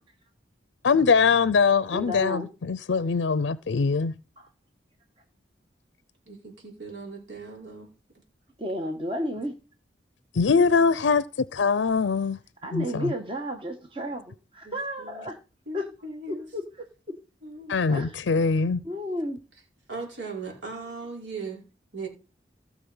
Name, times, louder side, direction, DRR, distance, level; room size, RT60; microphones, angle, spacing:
voice 1, 0.8-4.1 10.3-11.2 11.5-12.4 12.7-13.1 17.7-18.8, left 5 dB, 80° left, 0.5 m, -22 dB
voice 2, 1.9-2.5 4.4-4.5 8.6-9.5 12.6-15.4 15.7-15.9 16.3-16.8 17.9-18.2 18.8-19.4, equal, 30° right, 1.3 m, -32 dB
voice 3, 6.3-7.9 14.6-14.7 15.0-15.2 15.7-16.4 17.4-17.8 19.9-21.6 21.9-22.1, right 3 dB, 80° right, 4.8 m, -38 dB
17.0 x 6.3 x 5.5 m
head